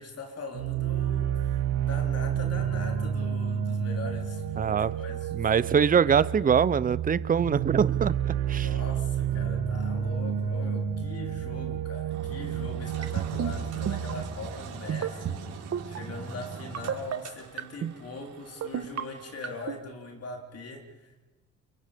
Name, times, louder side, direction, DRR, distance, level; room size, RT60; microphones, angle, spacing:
voice 1, 0.0-6.3 8.6-21.2, left 3 dB, 50° left, 3.7 m, -41 dB
sound 1, 0.5-14.2, right 9 dB, 90° right, 1.9 m, -30 dB
voice 2, 4.6-4.9 5.3-8.7, right 7 dB, 25° right, 0.7 m, -24 dB
Engine, 12.1-19.7, right 4 dB, 70° right, 5.6 m, -42 dB
sound 2, 13.0-13.5 13.9-14.1 14.9-15.4 15.7-16.0 16.7-17.2 17.6-17.9 18.6-19.0 19.4-19.8, right 9 dB, 55° right, 1.4 m, -30 dB
29.5 x 23.0 x 5.2 m
supercardioid pair, 75°, 31 cm